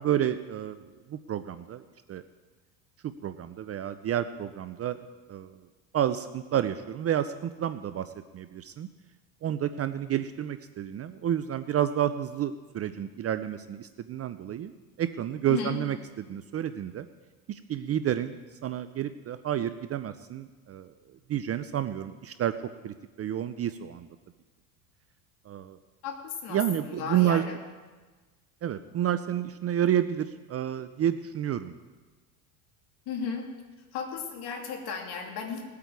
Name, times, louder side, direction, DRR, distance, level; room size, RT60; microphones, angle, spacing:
voice 1, 0.0-1.8 2.1-2.2 3.0-5.0 5.3-5.6 5.9-8.9 9.4-14.7 15.0-17.1 17.5-20.9 21.3-22.5 22.8-24.1 25.5-25.8 26.5-27.4 28.6-31.7, right 10 dB, 35° right, 12 dB, 0.5 m, -30 dB
voice 2, 26.0-27.6 33.1-33.5 33.9-35.6, left 6 dB, 60° left, 2 dB, 2.8 m, -35 dB
19.5 x 8.4 x 4.7 m, 1.3 s
supercardioid pair, 90°, 45 cm